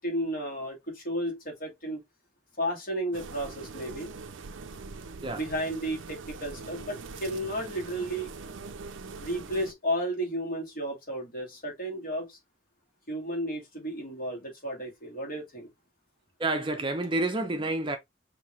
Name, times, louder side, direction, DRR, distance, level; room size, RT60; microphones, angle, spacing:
voice 1, 0.0-2.0 2.6-4.1 5.3-8.3 9.2-12.4 13.1-15.7, equal, 50° left, 2.0 m, -33 dB
sound 1, 3.1-9.7, right 4 dB, 75° right, 0.5 m, -42 dB
voice 2, 16.4-18.0, right 2 dB, 25° right, 0.6 m, -29 dB
5.4 x 2.8 x 3.0 m
head